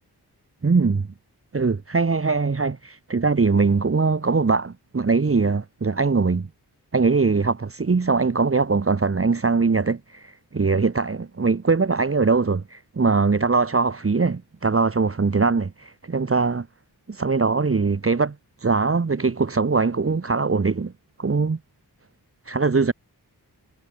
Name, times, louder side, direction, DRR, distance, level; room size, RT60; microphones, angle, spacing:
voice 1, 0.6-1.1 1.5-6.5 6.9-16.7 17.1-18.3 18.6-20.9 21.2-21.6 22.5-22.9, right 4 dB, 35° right, 1.2 m, -21 dB
wide cardioid pair, 90°, 40 cm